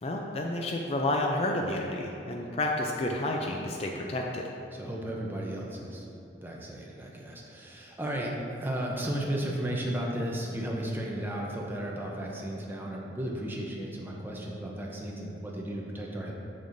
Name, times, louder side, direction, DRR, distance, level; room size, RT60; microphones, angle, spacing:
voice 1, 0.0-4.4, left 1 dB, 35° left, 1 dB, 0.3 m, -30 dB
voice 2, 4.7-6.0 6.4-16.3, right 1 dB, 10° right, -2 dB, 0.6 m, -34 dB
6.7 x 6.4 x 2.6 m, 2.9 s
head